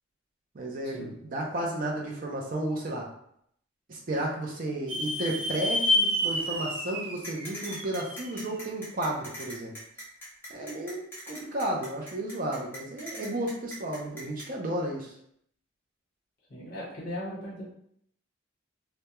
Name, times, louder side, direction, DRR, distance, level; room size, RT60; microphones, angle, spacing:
voice 1, 0.5-3.0 3.9-9.7 10.5-15.1, right 1 dB, 45° right, -1 dB, 0.5 m, -33 dB
sound 1, 4.9-8.4, left 1 dB, 85° right, 0.8 m, -29 dB
sound 2, 7.2-14.5, equal, 10° left, 0.7 m, -41 dB
voice 2, 16.5-17.7, equal, 50° left, -5 dB, 1.1 m, -38 dB
2.2 x 2.1 x 2.9 m, 0.69 s
head